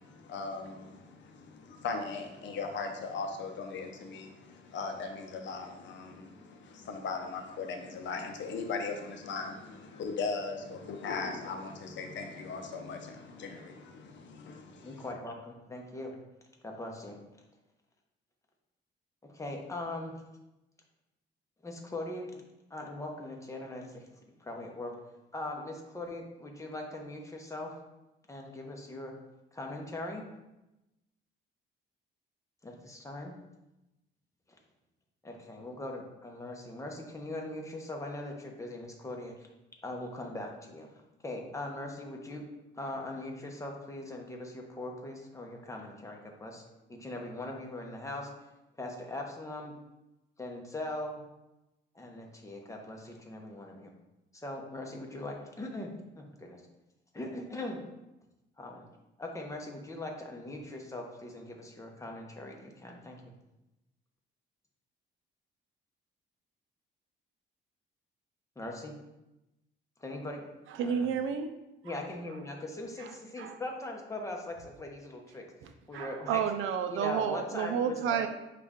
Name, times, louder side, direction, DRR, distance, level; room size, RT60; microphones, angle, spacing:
voice 1, 0.0-15.1, left 4 dB, 70° left, 5 dB, 0.6 m, -38 dB
voice 2, 14.8-16.2 16.6-17.2 19.2-20.1 21.6-22.4 22.7-24.9 25.3-27.8 28.3-29.1 29.5-30.2 32.6-33.3 35.2-39.3 39.8-40.9 41.2-42.4 42.8-46.6 46.9-48.3 48.8-49.7 50.4-51.2 51.9-53.9 54.3-55.9 56.2-56.6 57.1-57.8 58.6-58.8 59.2-63.2 68.6-68.9 70.0-70.5 70.8-71.1 71.8-75.4 75.9-76.4 76.9-78.2, left 1 dB, 15° left, 1 dB, 0.8 m, -40 dB
voice 3, 70.7-71.5 71.9-72.0 73.0-73.6 75.6-78.3, right 7 dB, 80° right, 8 dB, 0.4 m, -31 dB
5.2 x 2.4 x 3.6 m, 0.96 s
cardioid pair, 90°, 20 cm